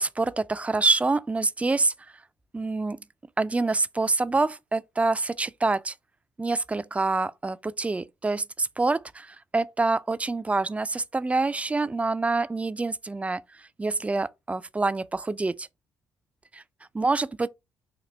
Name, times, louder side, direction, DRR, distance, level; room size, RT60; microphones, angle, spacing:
voice 1, 0.0-1.9 2.5-3.0 3.4-5.9 6.4-13.4 13.8-15.7 16.5-16.6 16.9-17.5, right 3 dB, 15° right, 0.3 m, -26 dB
3.9 x 2.9 x 3.1 m
supercardioid pair, 55°, 8 cm